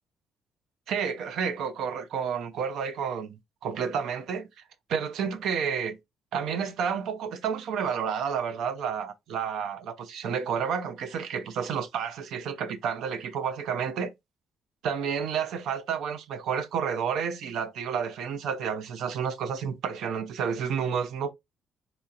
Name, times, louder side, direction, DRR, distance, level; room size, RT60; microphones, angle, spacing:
voice 1, 0.9-4.5 4.9-6.0 6.3-14.1 14.8-21.3, right 7 dB, 80° right, 0.5 m, -30 dB
4.1 x 2.8 x 2.4 m
cardioid pair, 90°, 0 cm